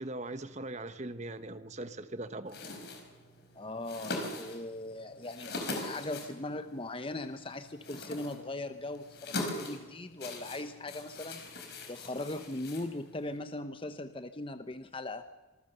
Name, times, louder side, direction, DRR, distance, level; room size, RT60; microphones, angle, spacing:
voice 1, 0.0-2.6, right 2 dB, 35° right, 1.2 m, -40 dB
sound 1, 2.5-13.4, left 2 dB, 55° left, 5.0 m, -42 dB
voice 2, 3.5-11.4 11.9-15.2, left 2 dB, 25° left, 0.9 m, -39 dB
26.5 x 19.5 x 6.8 m
head